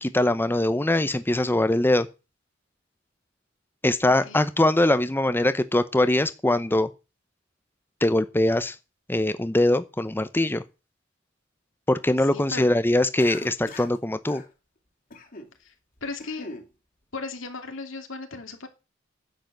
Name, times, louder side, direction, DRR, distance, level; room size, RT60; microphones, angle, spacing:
voice 1, 0.0-2.1 3.8-6.9 8.0-8.8 9.1-10.6 11.9-14.4, left 1 dB, 10° left, 0.7 m, -22 dB
voice 2, 12.2-12.8 15.6-15.7 16.0-16.5 17.1-18.7, left 3 dB, 85° left, 2.8 m, -36 dB
Cough, 13.2-14.0 14.3-14.5 15.1-15.5 16.0-16.7, left 2 dB, 45° left, 2.4 m, -41 dB
10.5 x 7.7 x 7.8 m
head